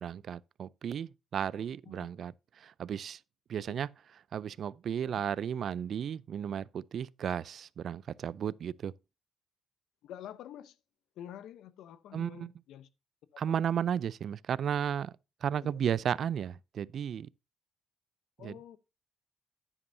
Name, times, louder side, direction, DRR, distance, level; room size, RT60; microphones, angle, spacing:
voice 1, 0.0-3.2 3.5-3.9 4.3-8.9 12.1-12.5 13.4-15.1 15.4-17.3 18.4-18.6, right 8 dB, 60° right, 0.4 m, -34 dB
voice 2, 10.0-10.8 11.2-12.9 15.5-15.7 18.4-18.8, left 11 dB, 80° left, 0.8 m, -48 dB
10.5 x 9.8 x 2.7 m
cardioid pair, 90°, 0 cm